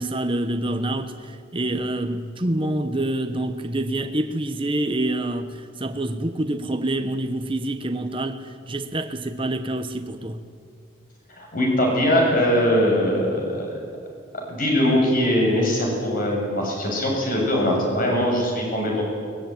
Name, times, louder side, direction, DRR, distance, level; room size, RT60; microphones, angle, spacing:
voice 1, 0.0-10.4, right 1 dB, 25° right, 1.2 m, -27 dB
voice 2, 11.4-13.7 14.5-19.0, equal, 45° left, 8.0 m, -21 dB
22.5 x 21.5 x 9.4 m
head